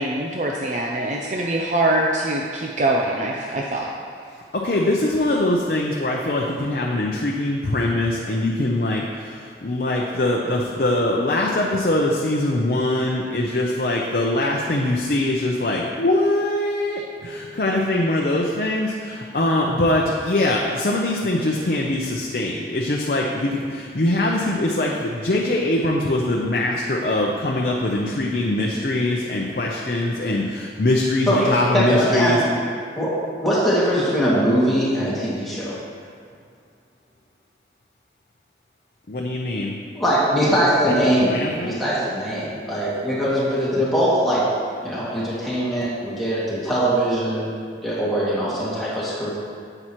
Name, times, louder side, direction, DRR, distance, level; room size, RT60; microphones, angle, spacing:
voice 1, 0.0-3.9, right 1 dB, 45° right, -1 dB, 0.5 m, -23 dB
voice 2, 4.5-32.4 39.1-39.8 41.2-41.8 43.8-43.9, left 1 dB, 55° left, -2 dB, 0.6 m, -22 dB
voice 3, 31.3-32.5 33.0-33.1 33.4-35.7 39.9-44.4 44.8-47.5 47.8-49.3, equal, ahead, -10 dB, 2.2 m, -21 dB
9.8 x 7.8 x 3.1 m, 2.2 s
head